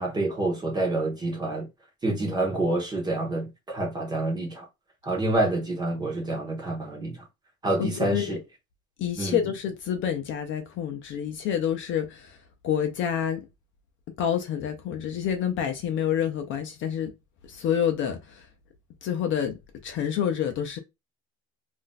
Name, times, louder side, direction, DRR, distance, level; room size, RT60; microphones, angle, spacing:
voice 1, 0.0-1.7 2.0-4.7 5.0-7.2 7.6-8.4 9.2-9.4, right 2 dB, 15° right, 0.6 m, -27 dB
voice 2, 7.8-8.4 9.0-12.4 12.6-13.4 14.2-17.1 17.5-18.5 19.0-20.8, left 9 dB, 40° left, 0.5 m, -28 dB
2.5 x 2.1 x 3.7 m
cardioid pair, 180°, 31 cm